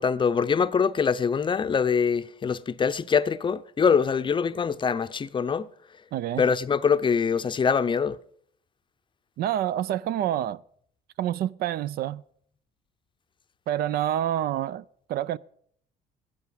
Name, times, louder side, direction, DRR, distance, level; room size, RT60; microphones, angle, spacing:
voice 1, 0.0-5.7 6.4-8.2, left 6 dB, 30° left, 0.6 m, -24 dB
voice 2, 6.1-6.4 9.4-10.6 11.2-12.2 13.7-15.4, right 12 dB, 65° right, 0.5 m, -27 dB
15.5 x 11.5 x 5.1 m
cardioid pair, 110°, 17 cm